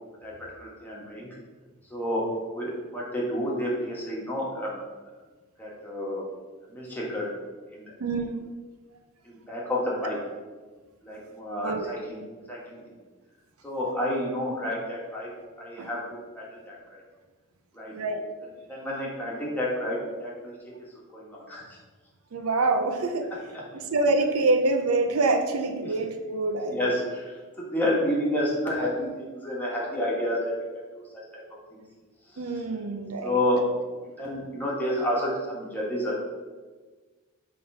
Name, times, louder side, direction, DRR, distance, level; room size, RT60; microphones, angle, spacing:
voice 1, 0.2-1.3 1.9-4.8 5.6-6.2 6.7-7.3 7.7-7.9 9.2-10.2 11.0-12.2 12.5-12.8 13.6-15.3 15.6-17.0 17.7-18.0 18.7-20.5 21.1-21.8 23.7-23.8 26.6-27.2 27.6-31.4 31.7-31.8 33.2-36.2, left 1 dB, 10° left, -5 dB, 1.6 m, -30 dB
voice 2, 8.0-8.4 11.6-11.9 15.8-15.9 17.9-18.2 22.3-23.3 23.7-26.9 32.4-33.4, right 2 dB, 80° right, 6 dB, 0.6 m, -26 dB
5.5 x 3.8 x 5.6 m, 1.3 s
head